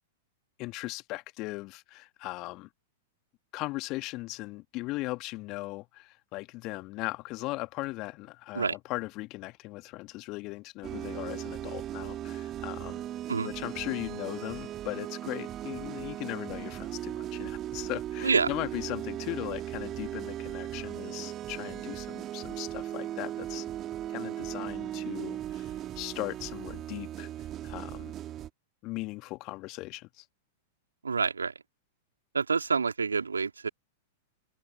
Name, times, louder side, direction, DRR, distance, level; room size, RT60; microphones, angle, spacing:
voice 1, 0.6-2.7 3.5-13.0 13.4-23.7 24.1-27.3 27.6-28.1 28.8-30.3, left 21 dB, 40° left, 1.9 m, -38 dB
sound 1, 10.8-28.5, right 12 dB, 30° right, 1.8 m, -38 dB
voice 2, 31.0-31.5 32.3-33.7, right 5 dB, 80° right, 3.4 m, -27 dB
open air
figure-of-eight pair, 100°, 0 cm